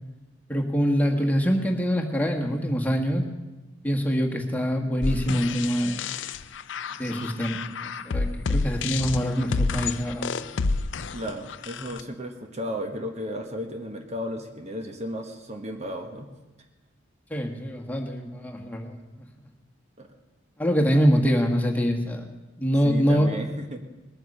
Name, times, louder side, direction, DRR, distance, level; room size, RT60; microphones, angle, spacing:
voice 1, 0.5-3.2 3.8-6.1 7.0-10.3 17.3-19.0 20.6-22.3 22.6-23.4, equal, 10° left, 1 dB, 1.5 m, -24 dB
sound 1, 5.0-12.0, left 4 dB, 70° left, 0.6 m, -29 dB
voice 2, 11.1-16.3 20.0-20.1 22.7-23.9, equal, 35° right, 5 dB, 1.2 m, -34 dB
20.0 x 9.3 x 6.7 m, 1.1 s
head